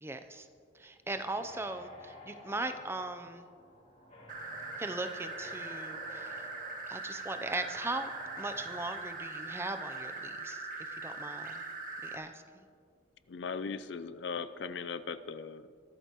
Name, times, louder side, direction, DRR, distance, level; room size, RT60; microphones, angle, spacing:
voice 1, 0.0-0.5 0.7-3.4 4.8-6.5 6.9-8.1 8.4-11.6 12.0-12.7, right 2 dB, 15° right, 8 dB, 0.5 m, -39 dB
sound 1, 1.1-8.9, left 1 dB, 35° left, 3.1 m, -53 dB
sound 2, 4.3-12.2, right 3 dB, 45° right, 1.5 m, -41 dB
voice 2, 13.3-15.8, left 5 dB, 65° left, 13 dB, 0.5 m, -39 dB
23.0 x 12.5 x 3.0 m, 2.2 s
head